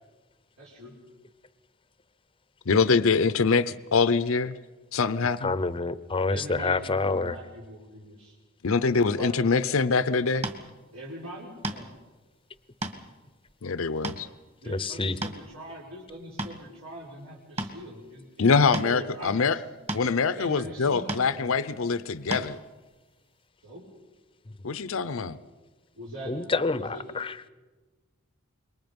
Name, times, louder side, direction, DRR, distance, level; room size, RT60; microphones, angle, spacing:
voice 1, 0.6-1.0 6.3-8.3 8.9-9.6 10.9-11.9 14.6-19.6 20.3-21.5 23.6-23.9 25.1-25.3 25.9-27.0, right 1 dB, 80° right, -5 dB, 5.0 m, -42 dB
voice 2, 2.7-4.5 4.9-5.5 8.6-10.5 13.6-14.3 18.4-19.6 19.9-22.6 24.6-25.4, left 4 dB, 70° left, 15 dB, 0.7 m, -24 dB
voice 3, 5.4-7.4 14.7-15.2 26.3-27.4, left 3 dB, 25° left, 15 dB, 0.7 m, -27 dB
sound 1, 10.4-10.6 11.6-12.0 12.6-13.0 13.5-13.6 14.0-14.2 15.0-15.5 16.1-16.6 17.6-17.8 18.7-18.9 19.9-20.1 21.1-21.3 22.3-22.5, right 1 dB, 30° right, 2.1 m, -32 dB
27.0 x 23.0 x 5.3 m, 1.2 s
head